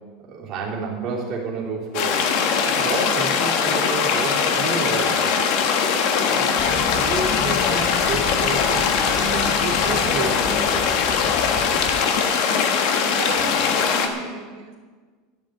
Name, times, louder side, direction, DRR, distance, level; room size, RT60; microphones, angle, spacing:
voice 1, 0.2-2.2 2.6-5.5 6.3-11.3, right 4 dB, 35° right, -4 dB, 3.4 m, -30 dB
sound 1, 1.9-14.1, left 6 dB, 50° left, 1.4 m, -21 dB
sound 2, 6.6-12.0, left 7 dB, 35° left, 0.9 m, -31 dB
voice 2, 13.0-14.8, right 4 dB, 70° right, 2 dB, 3.1 m, -34 dB
12.5 x 7.5 x 8.5 m, 1.5 s
supercardioid pair, 175°, 0 cm